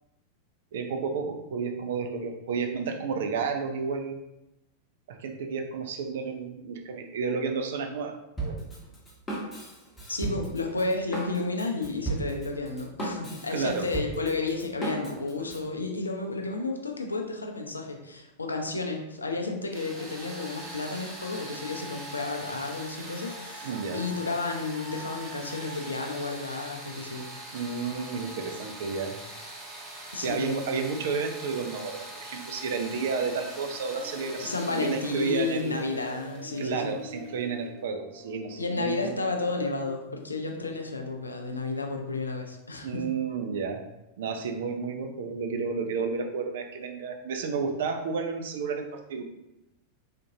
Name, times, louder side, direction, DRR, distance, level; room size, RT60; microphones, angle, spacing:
voice 1, 0.7-4.2 5.1-8.6 13.5-13.9 23.6-24.0 27.5-29.2 30.2-35.7 36.6-39.2 42.8-43.8 44.2-49.2, right 5 dB, 55° right, 5 dB, 0.4 m, -31 dB
Drum kit, 8.4-15.7, right 2 dB, 15° left, 1.0 m, -36 dB
voice 2, 10.1-27.6 30.1-30.6 34.4-37.0 38.6-43.0, left 3 dB, 80° left, 3 dB, 0.4 m, -32 dB
sound 1, 19.7-37.4, right 1 dB, 30° right, 0.9 m, -42 dB
sound 2, 32.7-41.3, left 1 dB, 60° left, 0.8 m, -47 dB
3.6 x 2.5 x 2.7 m, 0.90 s
figure-of-eight pair, 90°, 0 cm